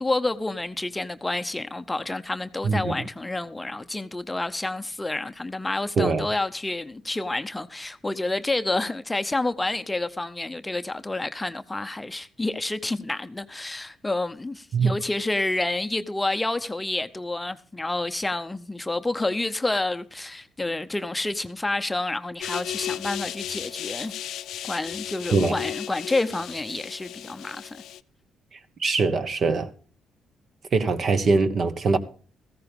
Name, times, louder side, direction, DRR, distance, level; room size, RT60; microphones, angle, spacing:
voice 1, 0.0-24.1 24.6-27.8, left 2 dB, 15° left, 0.6 m, -29 dB
sound 1, 22.4-28.0, left 11 dB, 80° left, 0.5 m, -35 dB
voice 2, 28.8-29.7 30.7-32.0, right 4 dB, 50° right, 1.3 m, -22 dB
14.5 x 13.5 x 3.6 m
cardioid pair, 90°, 0 cm